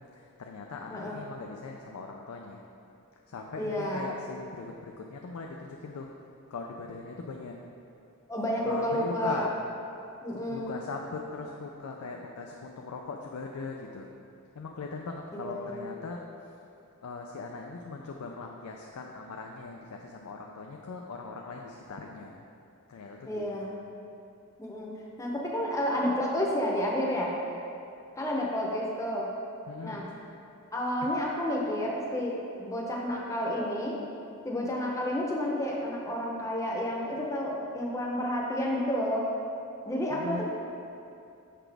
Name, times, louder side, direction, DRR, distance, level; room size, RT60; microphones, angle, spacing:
voice 1, 0.1-2.6 3.3-6.1 6.5-7.6 8.7-9.5 10.5-14.1 14.6-16.6 17.0-22.4 22.9-23.4 23.7-23.8 29.7-30.0 31.0-31.1 40.1-40.4, left 3 dB, 85° left, 1 dB, 0.4 m, -40 dB
voice 2, 0.9-1.2 3.6-4.1 8.3-9.5 10.2-10.7 15.3-15.8 23.3-23.7 24.6-24.9 25.2-27.3 28.2-29.3 29.8-30.1 30.7-34.0 34.4-39.3 39.8-40.4, left 1 dB, 15° left, -3 dB, 0.7 m, -30 dB
6.0 x 5.9 x 3.4 m, 2.6 s
head